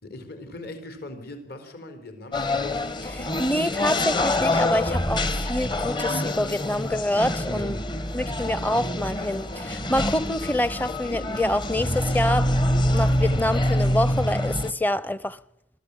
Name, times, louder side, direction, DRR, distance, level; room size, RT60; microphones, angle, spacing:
voice 1, 0.0-2.5 7.4-7.7, left 1 dB, 60° left, 3.9 m, -40 dB
sound 1, 2.3-14.7, left 1 dB, 25° left, 1.2 m, -26 dB
voice 2, 3.0-7.8 8.1-12.5 12.9-15.4, left 1 dB, 10° left, 0.8 m, -26 dB
23.0 x 14.5 x 10.0 m
head